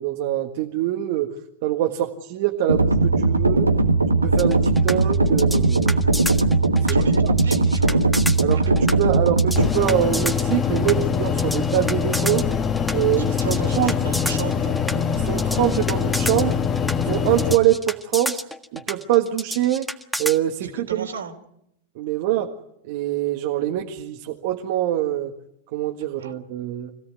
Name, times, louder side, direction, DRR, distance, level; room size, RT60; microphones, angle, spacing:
voice 1, 0.0-1.3 1.6-3.7 4.1-6.0 6.9-7.3 8.4-12.5 12.9-13.9 15.0-16.6 17.0-18.4 18.7-19.9 20.2-21.1 21.9-22.5 22.8-25.3 25.7-26.9, right 13 dB, 55° right, 3 dB, 1.7 m, -24 dB
sound 1, 2.7-9.7, right 3 dB, 90° right, 1.6 m, -19 dB
sound 2, 4.4-20.4, equal, ahead, 1.6 m, -31 dB
voice 2, 6.8-8.0 13.2-14.8 20.6-21.3 26.2-26.3, right 5 dB, 75° right, 6 dB, 3.2 m, -35 dB
sound 3, 9.6-17.6, left 7 dB, 25° left, 1.6 m, -23 dB
26.0 x 16.5 x 9.6 m, 0.80 s
figure-of-eight pair, 95°, 0 cm